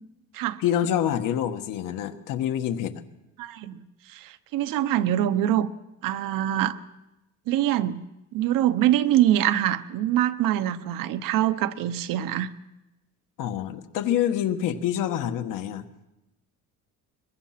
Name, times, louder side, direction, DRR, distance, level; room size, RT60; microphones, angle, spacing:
voice 1, 0.6-3.0 13.4-15.9, left 10 dB, 70° left, 8 dB, 1.4 m, -26 dB
voice 2, 3.4-3.8 4.1-5.7 6.0-6.8 7.5-8.0 8.3-12.5, right 12 dB, 75° right, 11 dB, 1.0 m, -24 dB
22.5 x 22.0 x 5.9 m, 0.99 s
cardioid pair, 180°, 33 cm